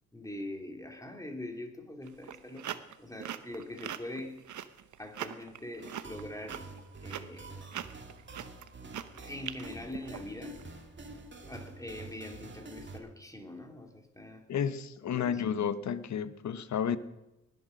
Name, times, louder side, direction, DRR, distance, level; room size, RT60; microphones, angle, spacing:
voice 1, 0.1-4.5 5.0-6.7 7.0-7.6 9.1-10.7 11.4-14.4 15.1-15.4, left 1 dB, 10° left, 2.7 m, -43 dB
sound 1, 2.1-10.6, right 10 dB, 70° right, 0.9 m, -42 dB
sound 2, 5.8-13.0, right 2 dB, 35° right, 2.1 m, -47 dB
voice 2, 14.5-17.0, left 8 dB, 65° left, 1.0 m, -31 dB
20.0 x 8.2 x 6.4 m
cardioid pair, 70°, 31 cm